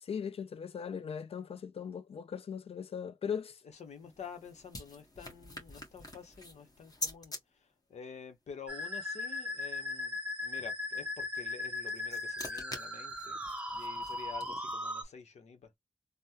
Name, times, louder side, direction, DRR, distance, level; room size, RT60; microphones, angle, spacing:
voice 1, 0.0-3.6, left 7 dB, 60° left, 0.4 m, -39 dB
voice 2, 3.6-13.4 13.7-15.7, left 6 dB, 90° left, 0.8 m, -49 dB
sound 1, 3.8-7.4 11.6-14.9, left 2 dB, 35° left, 1.2 m, -45 dB
Musical instrument, 8.7-15.0, left 2 dB, 10° right, 0.8 m, -38 dB
3.4 x 2.1 x 2.8 m
wide cardioid pair, 85°, 11 cm